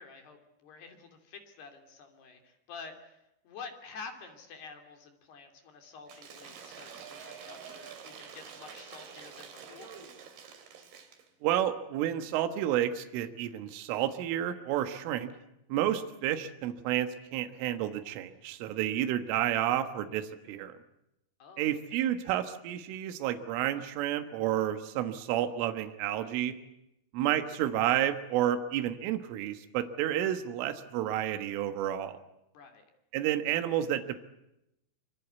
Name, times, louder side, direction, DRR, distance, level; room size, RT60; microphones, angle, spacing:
voice 1, 0.0-10.0 21.4-22.0 32.5-32.9, left 5 dB, 55° left, 6 dB, 4.8 m, -49 dB
Cheering / Applause / Crowd, 6.1-11.3, right 7 dB, 55° right, 4.4 m, -47 dB
voice 2, 11.4-15.3 15.7-20.7 21.6-26.6 27.1-32.2 33.1-34.2, right 11 dB, 75° right, 8 dB, 3.9 m, -30 dB
26.5 x 25.0 x 8.3 m, 0.85 s
omnidirectional pair, 6.0 m